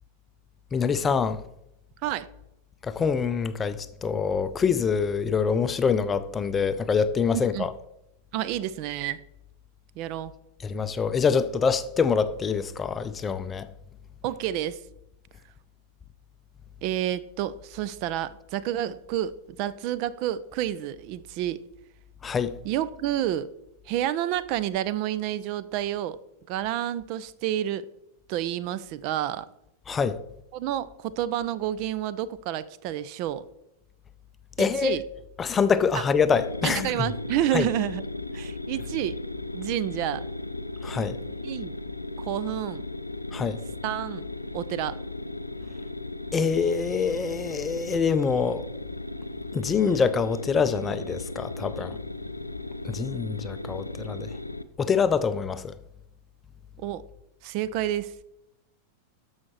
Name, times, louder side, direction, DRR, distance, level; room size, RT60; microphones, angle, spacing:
voice 1, 0.7-1.4 2.8-7.7 10.6-13.7 22.2-22.6 29.9-30.2 34.6-35.0 35.4-37.1 37.5-37.7 40.8-41.2 43.3-43.6 46.3-48.6 49.5-52.0 52.8-54.4 54.8-55.7, left 6 dB, 20° left, 0.4 m, -25 dB
voice 2, 7.3-7.7 8.3-9.2 10.0-10.3 14.2-14.8 16.8-21.6 22.6-23.5 23.9-26.2 26.5-27.9 28.3-29.5 30.5-33.5 34.6-35.0 35.9-36.0 36.6-38.0 38.3-39.2 39.5-40.2 41.4-41.8 42.2-42.8 43.8-44.3 44.5-45.0 56.8-57.0 57.4-58.1, right 12 dB, 45° right, 0.4 m, -29 dB
sound 1, 36.3-54.6, left 2 dB, 85° left, 0.4 m, -36 dB
13.0 x 5.6 x 3.1 m
figure-of-eight pair, 90°, 0 cm